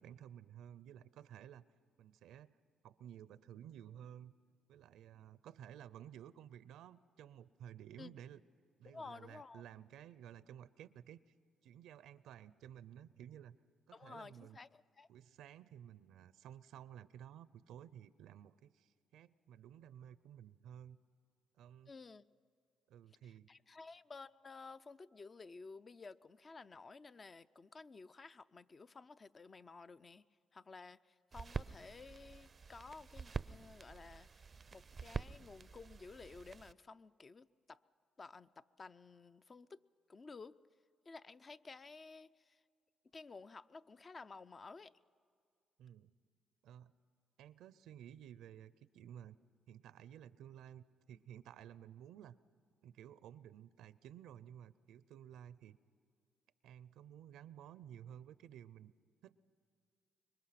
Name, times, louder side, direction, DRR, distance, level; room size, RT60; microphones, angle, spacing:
voice 1, 0.0-1.6 2.0-2.5 2.8-4.3 4.7-8.4 8.8-11.2 11.6-13.6 13.9-14.6 15.1-21.0 21.6-21.9 22.9-23.5 45.8-46.1 46.6-46.9 47.4-49.4 49.7-52.4 52.8-55.8 56.6-58.9 59.2-59.4, right 10 dB, 85° right, 0.5 m, -54 dB
voice 2, 8.9-9.6 13.9-15.1 21.9-22.3 23.2-30.2 30.5-37.8 38.2-39.8 40.1-40.6 41.1-42.6 43.1-44.9, left 4 dB, 35° left, 0.5 m, -54 dB
sound 1, 31.3-36.7, right 5 dB, 35° right, 0.5 m, -46 dB
25.5 x 22.5 x 5.9 m
cardioid pair, 90°, 0 cm